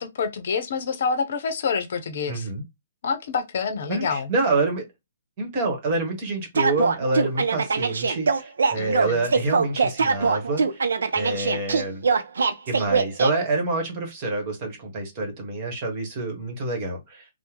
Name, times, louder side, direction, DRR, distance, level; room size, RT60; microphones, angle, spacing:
voice 1, 0.0-2.5 3.0-4.3 8.7-9.3, left 5 dB, 55° left, 0.6 m, -27 dB
voice 2, 2.3-2.6 3.9-4.8 5.4-10.8 11.1-12.0 12.7-17.3, right 2 dB, 35° right, 1.4 m, -27 dB
sound 1, 6.6-13.3, right 5 dB, 70° right, 0.5 m, -22 dB
3.3 x 2.1 x 3.0 m
figure-of-eight pair, 130°, 0 cm